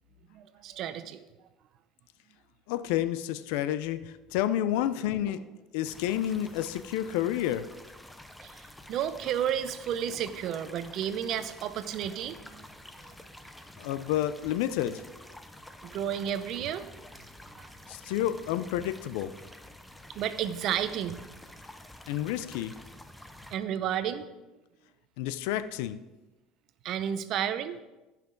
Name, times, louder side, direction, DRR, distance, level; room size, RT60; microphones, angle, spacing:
voice 1, 0.3-1.5 8.4-12.7 13.0-13.2 15.8-16.8 17.6-17.7 18.1-18.2 20.1-21.2 23.5-24.3 26.8-27.8, right 9 dB, 55° right, 12 dB, 0.6 m, -32 dB
voice 2, 2.7-5.4 5.7-7.7 13.8-15.0 17.9-19.3 22.1-22.8 25.2-26.0, left 12 dB, 80° left, 13 dB, 0.5 m, -30 dB
sound 1, 4.6-5.5 7.0-7.7 9.9-10.7, right 3 dB, 20° right, 1.7 m, -51 dB
sound 2, 5.8-23.6, left 1 dB, 5° left, 0.7 m, -49 dB
15.0 x 5.9 x 3.9 m, 1.1 s
supercardioid pair, 120°, 0 cm